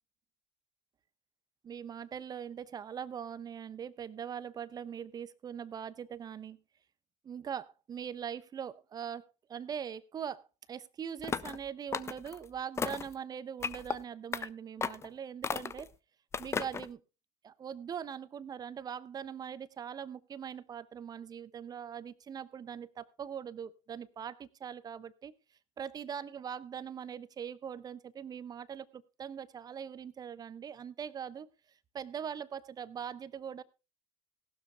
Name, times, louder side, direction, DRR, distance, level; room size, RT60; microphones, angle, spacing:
voice 1, 1.6-6.6 7.2-15.9 16.4-17.0 17.4-25.3 25.8-31.5 31.9-33.6, right 8 dB, 25° right, 17 dB, 0.9 m, -42 dB
sound 1, 11.2-11.6 11.9-12.4 12.8-13.1 13.6-14.0 14.3-14.5 14.8-15.1 15.4-15.9 16.3-16.9, left 5 dB, 15° left, 0.6 m, -35 dB
18.0 x 12.5 x 2.2 m, 0.30 s
figure-of-eight pair, 75°, 16 cm